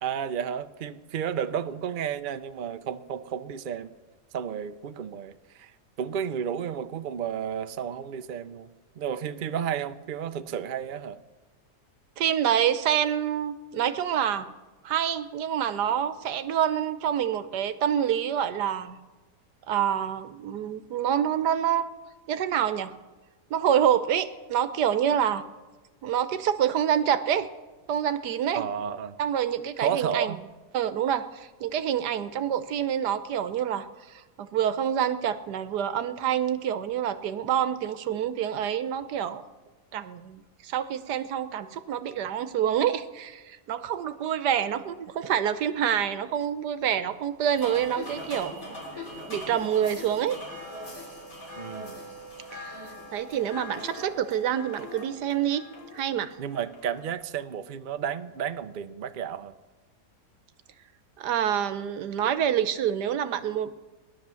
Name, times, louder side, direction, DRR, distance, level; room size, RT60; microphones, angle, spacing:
voice 1, 0.0-3.9 4.3-5.7 6.0-11.2 28.5-29.2 29.8-30.4 51.6-52.0 56.4-59.5, right 8 dB, 60° right, 0.5 m, -32 dB
voice 2, 12.2-14.5 14.8-19.0 19.7-21.9 22.3-22.9 23.5-25.4 26.0-27.5 27.9-28.6 29.2-30.4 30.7-39.4 39.9-50.4 52.5-55.6 55.9-56.3 61.2-63.9, right 9 dB, 85° right, 1.4 m, -27 dB
sound 1, 47.5-57.1, left 1 dB, 55° left, 3.6 m, -41 dB
17.5 x 11.5 x 7.0 m
omnidirectional pair, 1.7 m